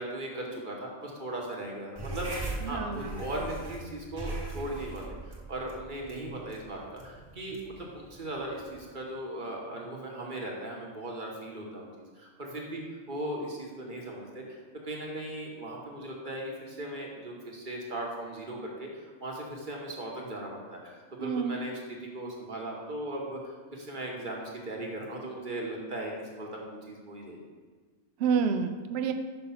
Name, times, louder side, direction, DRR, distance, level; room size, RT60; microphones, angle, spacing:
voice 1, 0.0-11.9 12.2-12.8 13.1-23.4 23.7-27.4, right 1 dB, 40° right, -1 dB, 1.1 m, -38 dB
sound 1, 2.0-8.8, right 2 dB, 20° right, 1.0 m, -40 dB
voice 2, 2.7-3.2 21.2-21.6 28.2-29.1, right 6 dB, 60° right, 7 dB, 0.7 m, -28 dB
5.6 x 5.2 x 5.6 m, 1.4 s
omnidirectional pair, 1.4 m